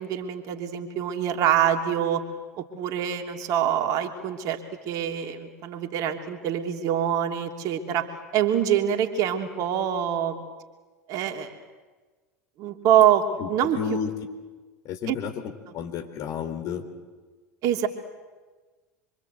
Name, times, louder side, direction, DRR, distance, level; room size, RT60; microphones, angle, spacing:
voice 1, 0.0-2.3 2.6-8.1 8.3-10.4 11.1-11.6 12.6-13.8 15.1-15.2 17.6-17.9, right 10 dB, 50° right, 4 dB, 2.9 m, -25 dB
voice 2, 13.7-14.1 14.8-15.3 15.7-16.8, left 6 dB, 45° left, 6 dB, 4.0 m, -31 dB
26.5 x 25.0 x 8.1 m, 1.3 s
figure-of-eight pair, 75°, 8 cm